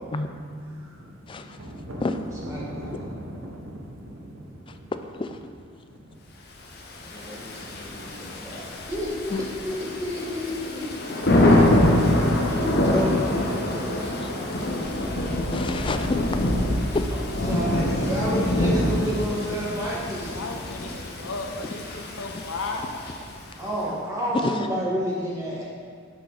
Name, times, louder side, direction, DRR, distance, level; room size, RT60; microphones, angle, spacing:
voice 1, 1.4-4.8 6.1-6.2 23.8-23.9, equal, 90° right, 0 dB, 1.1 m, -39 dB
voice 2, 2.4-3.1 7.0-11.6 12.5-14.1 17.1-20.3 23.6-25.6, equal, 15° right, -7 dB, 1.5 m, -31 dB
Thunder / Rain, 6.9-23.5, left 1 dB, 50° left, 0.8 m, -25 dB
voice 3, 15.5-16.2 16.7-17.0 24.4-24.5, left 3 dB, 25° left, 7 dB, 0.3 m, -28 dB
voice 4, 20.3-23.0, left 3 dB, 90° left, 3 dB, 0.9 m, -34 dB
7.9 x 6.2 x 4.0 m, 2.1 s
head